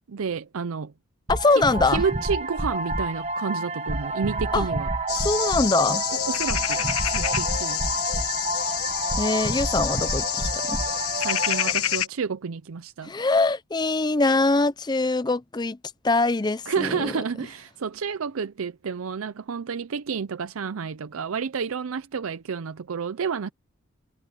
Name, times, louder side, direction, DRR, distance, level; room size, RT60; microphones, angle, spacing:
voice 1, 0.1-0.9 1.6-4.9 6.3-7.8 11.2-13.1 16.7-23.5, right 6 dB, 70° right, 0.5 m, -30 dB
voice 2, 1.3-2.0 4.5-4.7 5.2-6.0 9.2-10.8 13.0-15.8 16.0-17.1, left 3 dB, 20° left, 0.5 m, -23 dB
sound 1, 1.3-11.7, right 2 dB, 30° right, 1.3 m, -29 dB
sound 2, 5.1-12.1, left 11 dB, 80° left, 1.2 m, -28 dB
head